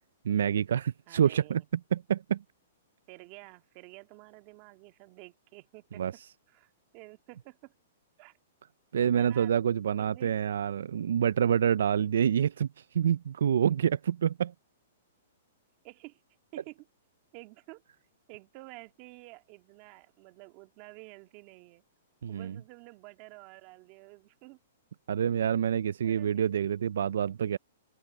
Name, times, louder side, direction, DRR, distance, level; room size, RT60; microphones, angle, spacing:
voice 1, 0.2-1.6 1.9-2.4 6.0-6.1 8.9-12.7 12.9-14.5 22.2-22.6 25.1-27.6, right 8 dB, 75° right, 0.3 m, -27 dB
voice 2, 1.1-1.6 3.1-6.2 6.5-7.7 8.2-8.4 9.0-9.6 10.0-10.3 15.8-16.2 16.5-16.9 17.3-17.8 18.3-21.8 22.3-24.6 26.0-26.5, right 23 dB, 35° right, 1.8 m, -50 dB
open air
hypercardioid pair, 155°, 0 cm